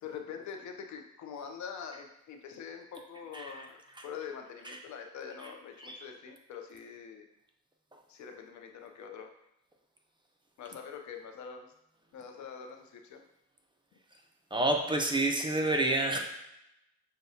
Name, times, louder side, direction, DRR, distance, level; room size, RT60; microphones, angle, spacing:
voice 1, 0.0-7.3 8.1-9.3 10.6-11.7 12.1-13.2, left 7 dB, 70° left, 4 dB, 0.6 m, -44 dB
voice 2, 14.5-16.2, right 2 dB, 15° right, 2 dB, 0.5 m, -29 dB
6.3 x 2.2 x 2.7 m, 0.85 s
cardioid pair, 90°, 30 cm